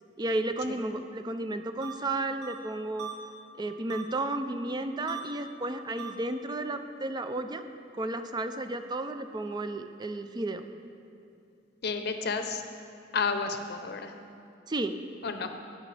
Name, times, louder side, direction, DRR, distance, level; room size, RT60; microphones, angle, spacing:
voice 1, 0.2-3.1 3.6-7.6 8.0-10.6 14.7-14.9, right 2 dB, 25° right, 8 dB, 0.4 m, -33 dB
sound 1, 1.8-1.9 2.4-2.5 3.0-3.1 3.9-4.0 5.1-5.2 6.0-6.1, right 8 dB, 65° right, 0.9 m, -38 dB
voice 2, 11.8-12.6 13.1-14.1 15.2-15.5, left 4 dB, 60° left, 7 dB, 0.6 m, -31 dB
15.5 x 6.2 x 3.3 m, 2.7 s
head